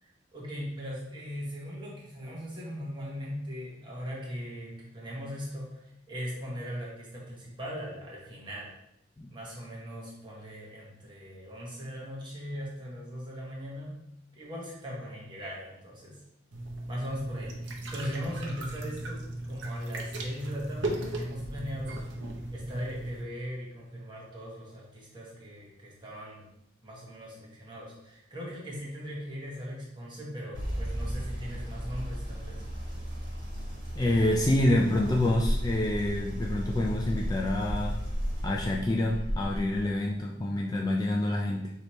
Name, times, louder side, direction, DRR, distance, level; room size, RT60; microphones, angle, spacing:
voice 1, 0.0-8.7 9.3-14.1 14.3-16.2 16.9-22.0 22.5-26.5 26.8-32.6, equal, 25° right, -4 dB, 1.1 m, -39 dB
sound 1, 16.5-23.2, right 1 dB, 65° right, 0.7 m, -37 dB
sound 2, 30.5-39.8, equal, 45° right, 1.6 m, -34 dB
voice 2, 34.0-38.0 38.4-41.7, left 1 dB, 20° left, -2 dB, 0.3 m, -27 dB
5.0 x 2.8 x 3.1 m, 0.82 s
head